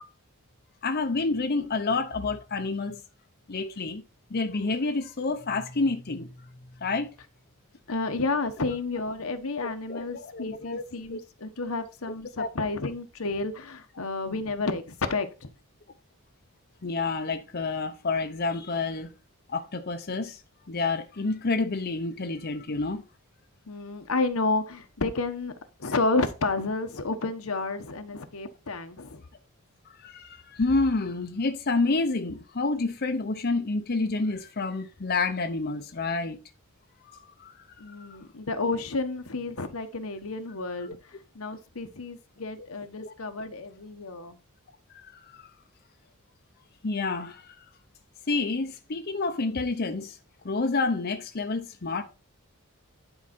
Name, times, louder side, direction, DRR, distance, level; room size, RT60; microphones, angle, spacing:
voice 1, 0.8-3.0 3.5-4.0 4.3-6.3 6.8-7.1 9.6-10.8 11.1-11.2 12.4-12.5 16.8-19.1 19.5-20.4 20.7-23.0 30.0-36.4 37.0-37.5 37.9-38.1 43.0-43.1 45.3-45.4 46.8-47.5 48.3-50.1 50.4-52.0, left 3 dB, 50° left, 0.8 m, -29 dB
voice 2, 7.9-15.3 23.7-25.5 25.8-29.2 37.8-41.0 41.3-44.4, left 3 dB, 75° left, 1.2 m, -30 dB
10.5 x 4.9 x 4.3 m
head